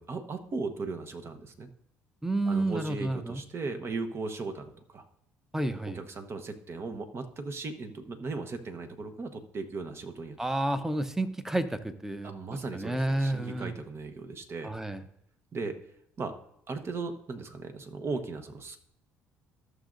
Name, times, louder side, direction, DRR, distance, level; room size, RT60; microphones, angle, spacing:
voice 1, 0.0-1.7 2.5-5.0 5.8-10.4 12.2-14.7 15.5-15.8 16.2-16.3 16.7-18.8, right 3 dB, 40° right, 7 dB, 1.0 m, -37 dB
voice 2, 2.2-3.4 5.5-6.0 10.4-12.3 12.7-13.7 14.6-15.0, right 1 dB, 5° right, 10 dB, 0.8 m, -30 dB
14.5 x 6.4 x 2.6 m, 0.73 s
hypercardioid pair, 60°, 6 cm